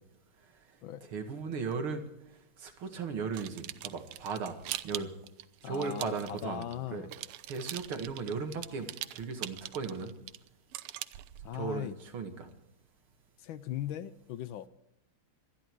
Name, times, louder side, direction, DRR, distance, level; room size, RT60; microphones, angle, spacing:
voice 1, 1.0-2.1 2.6-4.6 4.8-5.1 5.6-6.7 6.9-7.1 7.5-10.1 11.5-12.5, right 5 dB, 70° right, 5 dB, 2.7 m, -36 dB
sound 1, 3.3-6.8 7.1-11.6, right 14 dB, 90° right, 1.6 m, -42 dB
voice 2, 5.6-7.1 11.4-12.0 13.4-14.7, left 12 dB, 70° left, 15 dB, 1.4 m, -39 dB
26.0 x 10.5 x 4.6 m, 0.84 s
omnidirectional pair, 2.4 m